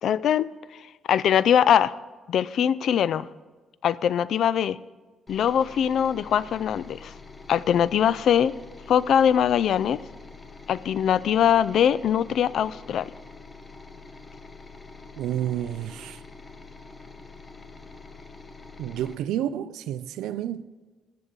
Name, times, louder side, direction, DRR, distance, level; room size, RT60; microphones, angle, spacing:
voice 1, 0.0-0.8 1.1-1.9 2.3-3.3 3.8-4.8 5.3-7.1 7.5-8.5 8.9-10.0 10.7-13.1, left 9 dB, 70° left, 0.3 m, -22 dB
sound 1, 5.3-19.2, left 4 dB, 25° left, 1.0 m, -45 dB
voice 2, 15.2-16.2 18.8-20.7, right 11 dB, 90° right, 0.4 m, -30 dB
19.0 x 6.7 x 3.8 m
cardioid pair, 90°, 0 cm